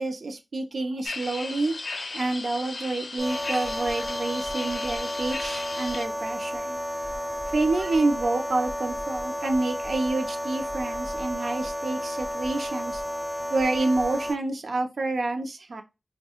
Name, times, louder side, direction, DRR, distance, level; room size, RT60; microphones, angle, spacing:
voice 1, 0.0-1.7 2.1-6.8 7.5-13.0 13.5-15.8, right 2 dB, 75° right, 5 dB, 0.5 m, -28 dB
sound 1, 1.0-6.0, left 3 dB, 75° left, 0.4 m, -36 dB
sound 2, 3.2-14.4, equal, ahead, 0.3 m, -32 dB
2.7 x 2.1 x 2.8 m, 0.26 s
wide cardioid pair, 75°, 0 cm